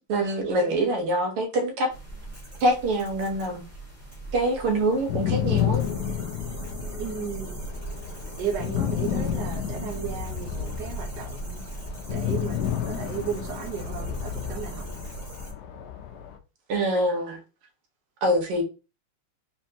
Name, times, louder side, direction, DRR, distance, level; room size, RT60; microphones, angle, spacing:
voice 1, 0.1-1.9 2.6-3.6 4.3-5.8 16.7-17.4 18.2-18.6, right 1 dB, 85° right, 2.2 m, -24 dB
sound 1, 1.9-15.5, right 2 dB, 5° right, 1.7 m, -39 dB
sound 2, 5.0-16.4, left 10 dB, 65° left, 1.0 m, -31 dB
voice 2, 7.0-7.6 8.4-11.6 12.1-15.0, right 7 dB, 55° right, 1.6 m, -35 dB
4.4 x 4.1 x 2.8 m
omnidirectional pair, 2.4 m